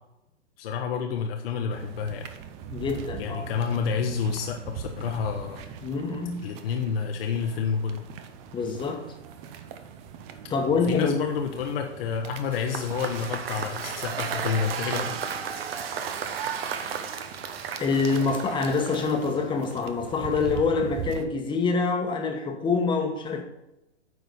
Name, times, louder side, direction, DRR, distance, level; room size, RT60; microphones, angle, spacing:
voice 1, 0.6-2.3 3.2-5.6 6.4-8.0 10.9-15.1, left 6 dB, 55° left, 3 dB, 1.0 m, -29 dB
sound 1, 1.7-21.2, right 8 dB, 20° right, 0.4 m, -42 dB
voice 2, 2.7-3.5 5.8-6.4 8.5-9.0 10.5-11.2 17.8-23.4, left 4 dB, 15° left, 3 dB, 1.1 m, -26 dB
Cheering / Applause / Crowd, 12.4-19.5, right 7 dB, 55° right, 1.1 m, -33 dB
9.3 x 4.0 x 6.7 m, 0.91 s
hypercardioid pair, 130°, 35 cm